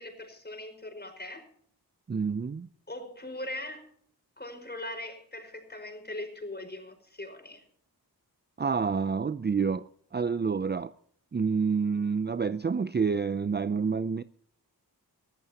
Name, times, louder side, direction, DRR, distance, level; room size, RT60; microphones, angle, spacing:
voice 1, 0.0-1.4 2.9-3.9 4.4-7.6, left 1 dB, 25° left, 5.1 m, -40 dB
voice 2, 2.1-2.7 8.6-10.9 11.3-14.2, right 5 dB, 25° right, 0.5 m, -28 dB
22.5 x 14.0 x 2.9 m
cardioid pair, 60°, 39 cm